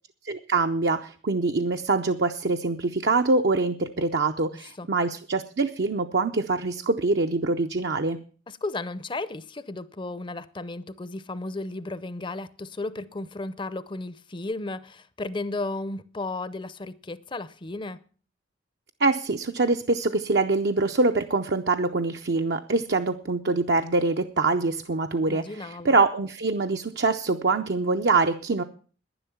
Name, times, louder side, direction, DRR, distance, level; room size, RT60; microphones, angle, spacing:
voice 1, 0.2-8.2 19.0-28.6, right 3 dB, 60° right, 0.6 m, -24 dB
voice 2, 8.5-18.0 25.3-26.0, left 2 dB, 25° left, 0.6 m, -34 dB
11.0 x 10.5 x 7.0 m
head